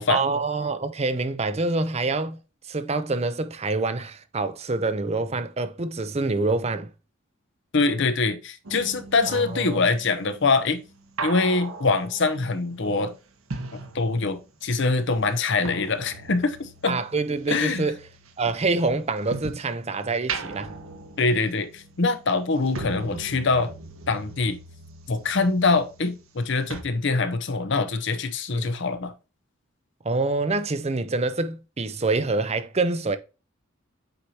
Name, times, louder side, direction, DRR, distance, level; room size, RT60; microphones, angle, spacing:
voice 1, 0.1-2.4 2.7-6.9 9.3-9.8 16.9-18.0 18.4-20.7 28.5-28.7 30.0-33.2, right 3 dB, 30° right, 0.6 m, -26 dB
voice 2, 7.7-10.8 11.2-13.1 13.7-17.0 17.5-17.9 21.2-23.7 24.1-24.6 25.1-29.1, left 3 dB, 60° left, 0.8 m, -24 dB
sound 1, 8.6-14.6 14.9-19.7 20.1-26.4 26.7-26.8, right 4 dB, 85° right, 1.1 m, -39 dB
7.9 x 4.7 x 2.8 m
head